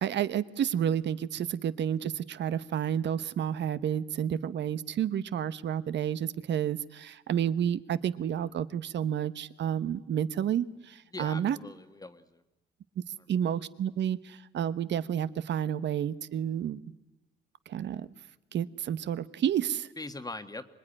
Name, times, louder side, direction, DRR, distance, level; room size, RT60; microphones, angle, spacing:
voice 1, 0.0-10.7 11.2-11.6 13.3-16.8 17.7-18.1 18.5-19.9, right 9 dB, 65° right, 15 dB, 1.0 m, -30 dB
voice 2, 11.1-12.4 20.0-20.7, left 2 dB, 20° left, 9 dB, 1.4 m, -41 dB
25.0 x 21.0 x 10.0 m, 1.0 s
cardioid pair, 90°, 20 cm